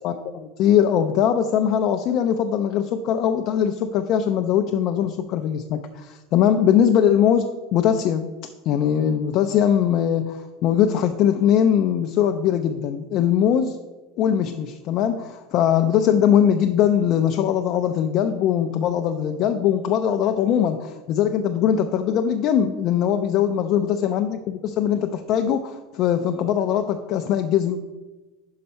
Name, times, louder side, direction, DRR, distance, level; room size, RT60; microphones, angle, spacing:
voice 1, 0.0-8.3 8.7-13.8 14.2-27.8, left 9 dB, 35° left, 5 dB, 0.3 m, -21 dB
5.6 x 5.2 x 5.4 m, 1.2 s
supercardioid pair, 170°, 0 cm